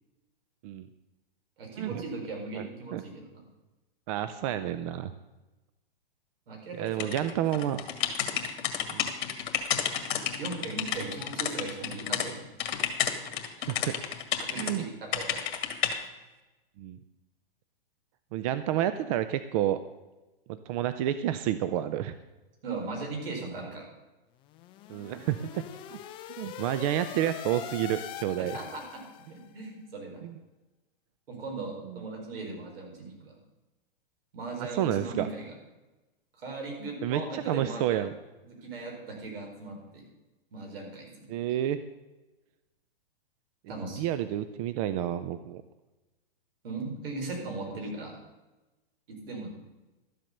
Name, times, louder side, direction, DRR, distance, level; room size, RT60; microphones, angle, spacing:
voice 1, 1.6-3.4 6.5-7.4 10.4-12.4 14.4-15.5 22.6-23.9 28.4-29.0 29.3-30.2 31.3-33.4 34.3-35.5 36.4-38.0 38.4-40.0 40.5-41.6 43.7-44.1 46.6-48.1 49.1-49.5, right 3 dB, 70° right, 1 dB, 4.6 m, -38 dB
voice 2, 2.5-3.0 4.1-5.1 6.8-7.8 8.9-9.1 13.6-14.0 14.5-14.9 16.8-17.0 18.3-19.8 20.5-22.2 24.9-25.6 25.9-26.0 26.4-28.6 30.2-30.3 31.9-32.0 34.6-35.3 37.0-38.1 41.3-41.8 44.0-45.6, right 12 dB, 35° right, 12 dB, 0.5 m, -30 dB
sound 1, 7.0-12.3 12.6-14.7 15.1-15.9, left 9 dB, 60° left, 1.9 m, -31 dB
sound 2, 24.4-29.5, left 12 dB, 15° left, 0.4 m, -42 dB
12.5 x 7.6 x 6.6 m, 1.1 s
hypercardioid pair, 135°, 30 cm